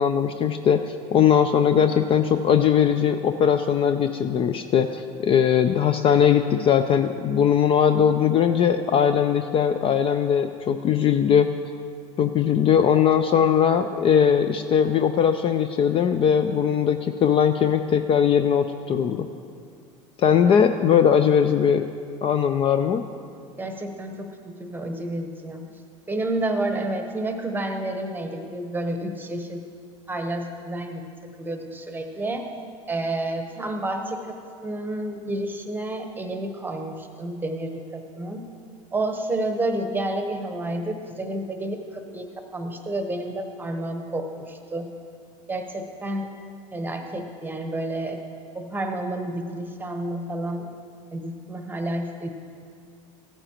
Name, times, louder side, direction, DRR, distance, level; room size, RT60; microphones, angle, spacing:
voice 1, 0.0-11.5 12.2-19.3 20.2-21.9 22.2-23.0, left 8 dB, 35° left, 9 dB, 0.4 m, -20 dB
voice 2, 23.6-24.3 24.6-25.7 26.1-29.6 30.1-32.5 32.9-34.3 34.6-38.5 38.9-42.3 42.5-44.9 45.5-46.3 46.7-48.2 48.5-50.7 51.1-52.3, right 1 dB, 10° right, 5 dB, 1.0 m, -30 dB
14.5 x 8.9 x 2.9 m, 2.3 s
supercardioid pair, 105°, 17 cm